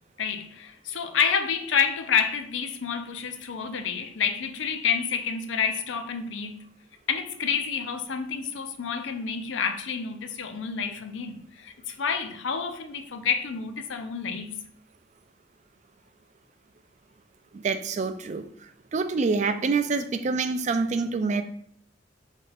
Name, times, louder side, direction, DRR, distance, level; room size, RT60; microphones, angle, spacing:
voice 1, 0.2-6.6 7.1-14.6, left 6 dB, 85° left, 0.5 m, -29 dB
voice 2, 17.5-18.4 18.9-21.4, right 4 dB, 40° right, 0.3 m, -26 dB
4.3 x 2.7 x 3.9 m
head